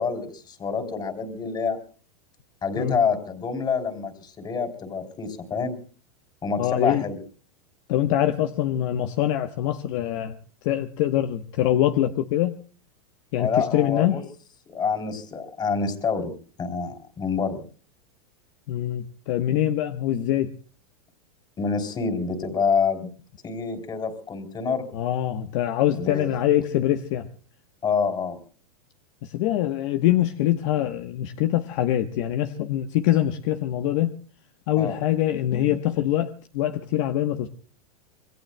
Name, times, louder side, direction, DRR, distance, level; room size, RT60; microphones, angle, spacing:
voice 1, 0.0-1.8 2.6-5.8 6.4-7.2 13.4-14.2 14.7-16.3 16.6-17.6 21.6-23.1 23.4-24.9 25.9-26.3 27.8-28.4 34.8-35.0, left 5 dB, 20° left, 5 dB, 3.3 m, -27 dB
voice 2, 6.6-7.0 7.9-10.3 10.6-12.5 13.3-14.2 18.7-20.5 24.9-27.3 29.2-34.1 34.7-37.5, left 12 dB, 55° left, 8 dB, 1.1 m, -24 dB
26.5 x 21.5 x 2.2 m, 0.40 s
hypercardioid pair, 125°, 19 cm